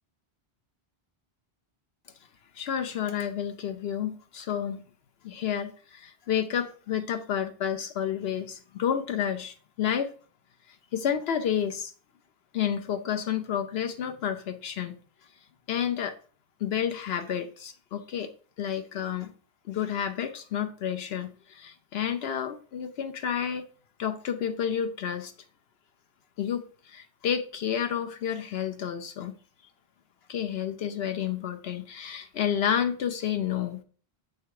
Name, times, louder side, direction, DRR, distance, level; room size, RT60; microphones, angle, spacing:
voice 1, 2.5-4.8 5.2-10.1 10.9-11.9 12.5-14.9 15.7-16.2 16.6-18.3 18.6-19.3 19.7-23.7 24.0-25.3 26.4-29.3 30.3-33.8, left 9 dB, 75° left, 0.9 m, -30 dB
7.5 x 3.3 x 4.7 m
omnidirectional pair, 1.0 m